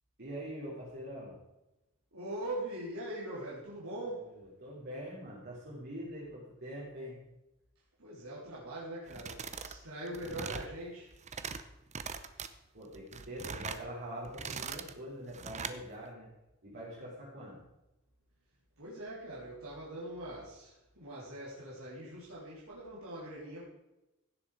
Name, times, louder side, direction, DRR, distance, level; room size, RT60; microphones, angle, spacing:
voice 1, 0.2-1.4 4.0-7.2 12.7-16.3 16.6-17.6, equal, 50° right, -6 dB, 3.6 m, -44 dB
voice 2, 2.1-4.3 8.0-11.1 18.8-23.6, right 1 dB, 75° right, -8 dB, 3.7 m, -42 dB
sound 1, 9.1-9.8 10.1-10.7 11.1-11.6 11.9-12.5 12.9-13.8 14.2-14.9 15.3-15.8, right 5 dB, 35° right, 0.7 m, -41 dB
16.0 x 7.3 x 4.9 m, 0.96 s
head